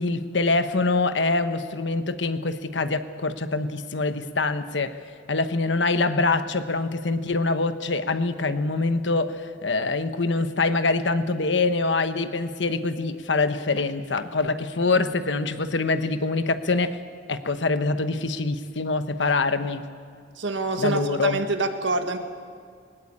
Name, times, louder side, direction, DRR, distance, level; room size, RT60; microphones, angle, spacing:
voice 1, 0.0-5.0 5.3-17.0 17.3-19.9 20.8-21.4, left 3 dB, 75° left, 10 dB, 1.1 m, -24 dB
voice 2, 20.4-22.2, right 3 dB, 80° right, 7 dB, 1.7 m, -26 dB
20.0 x 19.5 x 8.7 m, 2.1 s
head